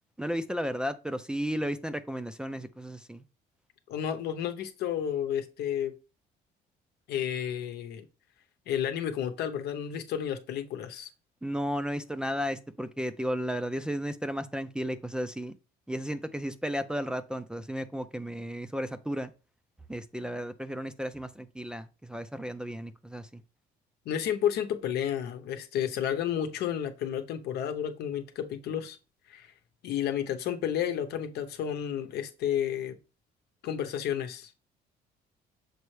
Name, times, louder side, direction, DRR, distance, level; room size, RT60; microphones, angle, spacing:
voice 1, 0.2-3.2 11.4-15.6 15.9-19.3 19.9-23.4, equal, 5° right, 0.4 m, -34 dB
voice 2, 3.9-5.9 7.1-8.1 8.7-11.1 24.1-29.0 29.3-29.5 29.8-33.0 33.6-34.5, left 9 dB, 75° left, 0.9 m, -31 dB
6.8 x 4.4 x 3.2 m
cardioid pair, 110°, 17 cm